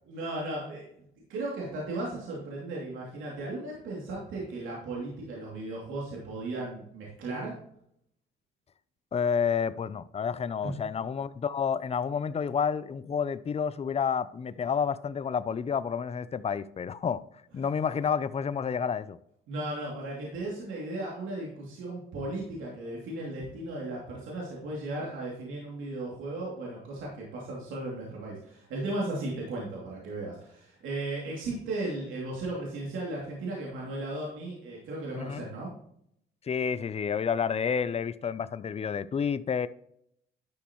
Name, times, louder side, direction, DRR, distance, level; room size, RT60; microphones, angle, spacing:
voice 1, 0.1-7.6 10.6-10.7 19.5-35.7, right 2 dB, 85° right, 2.8 m, -36 dB
voice 2, 9.1-17.2 17.5-19.2 35.2-35.4 36.5-39.7, left 6 dB, 30° left, 0.5 m, -30 dB
11.5 x 6.1 x 3.1 m
cardioid pair, 90°, 20 cm